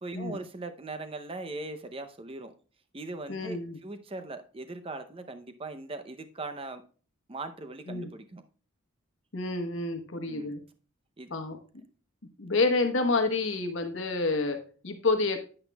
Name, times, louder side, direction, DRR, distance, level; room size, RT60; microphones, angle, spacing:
voice 1, 0.0-2.5 2.9-6.8 7.3-8.4 10.3-10.6 11.2-11.4, right 2 dB, 25° right, 0.6 m, -40 dB
voice 2, 3.3-3.8 7.9-8.1 9.3-10.6 11.3-11.6 12.4-15.4, left 3 dB, 65° left, 1.1 m, -28 dB
10.0 x 8.8 x 2.3 m
head